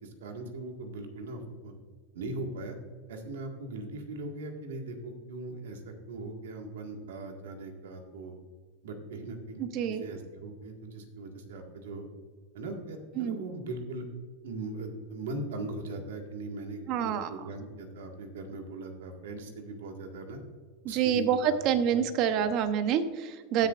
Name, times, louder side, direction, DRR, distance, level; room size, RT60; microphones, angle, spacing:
voice 1, 0.0-1.7 2.1-2.8 3.1-8.3 8.8-9.6 9.9-12.1 12.5-14.1 14.4-20.4 20.9-21.6 21.9-22.0 22.3-22.4 23.6-23.7, right 2 dB, 90° right, 3 dB, 1.8 m, -40 dB
voice 2, 9.6-10.0 13.2-13.4 16.9-17.3 20.8-23.7, right 8 dB, 45° right, 10 dB, 0.9 m, -27 dB
16.0 x 6.8 x 2.5 m, 1.5 s
supercardioid pair, 130°, 0 cm